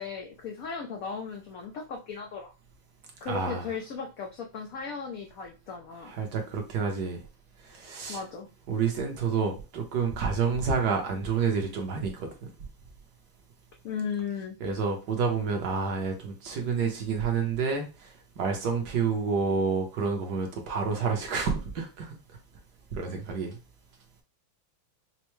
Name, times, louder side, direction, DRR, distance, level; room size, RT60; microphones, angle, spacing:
voice 1, 0.0-2.5 3.2-6.1 8.1-8.5 13.8-14.6, left 6 dB, 85° left, 2 dB, 0.7 m, -36 dB
voice 2, 3.3-3.7 6.1-7.2 7.7-8.2 8.7-12.3 14.6-22.1 23.0-23.6, right 5 dB, 60° right, 2 dB, 1.3 m, -29 dB
5.5 x 2.0 x 3.0 m, 0.31 s
omnidirectional pair, 2.1 m